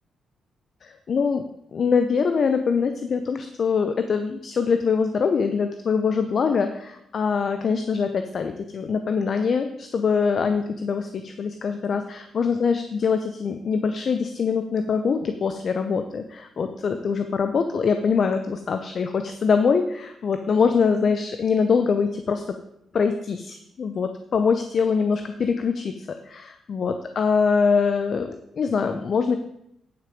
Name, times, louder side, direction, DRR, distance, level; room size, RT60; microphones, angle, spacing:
voice 1, 0.8-1.4 1.7-22.5 22.9-29.4, left 5 dB, 55° left, 7 dB, 0.7 m, -23 dB
9.7 x 6.0 x 5.1 m, 0.78 s
supercardioid pair, 55°, 0 cm